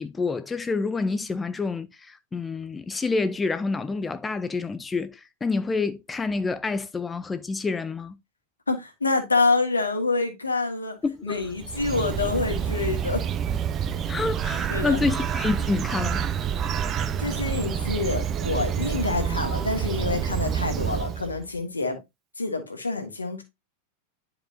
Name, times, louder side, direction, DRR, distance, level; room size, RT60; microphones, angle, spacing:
voice 1, 0.0-8.2 11.0-11.5 14.1-16.3, left 4 dB, 15° left, 0.4 m, -28 dB
voice 2, 8.7-11.0 11.2-13.2 14.7-15.0 17.2-22.0 22.4-23.4, left 3 dB, 80° left, 1.7 m, -27 dB
Bird, 11.4-21.4, right 8 dB, 30° right, 0.7 m, -28 dB
10.5 x 4.9 x 2.6 m
figure-of-eight pair, 90°, 0 cm